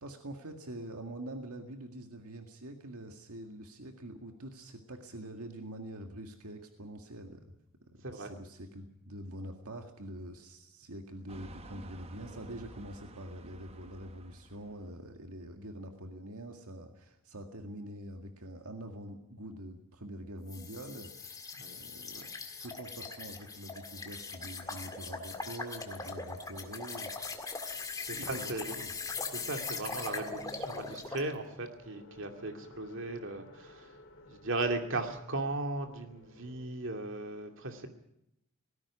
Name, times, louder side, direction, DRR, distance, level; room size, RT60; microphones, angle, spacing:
voice 1, 0.0-7.5 7.8-22.2 22.6-27.1 28.1-28.9, right 1 dB, 80° right, 4 dB, 2.0 m, -45 dB
sound 1, 11.3-15.0, right 1 dB, 25° right, 1.0 m, -51 dB
sound 2, 20.5-31.3, left 4 dB, 15° left, 1.9 m, -41 dB
sound 3, 22.5-36.7, left 1 dB, 55° left, 3.3 m, -57 dB
voice 2, 27.6-28.8 29.3-34.0 34.3-37.9, right 2 dB, 60° right, 5 dB, 2.5 m, -37 dB
18.5 x 15.5 x 9.9 m, 0.82 s
head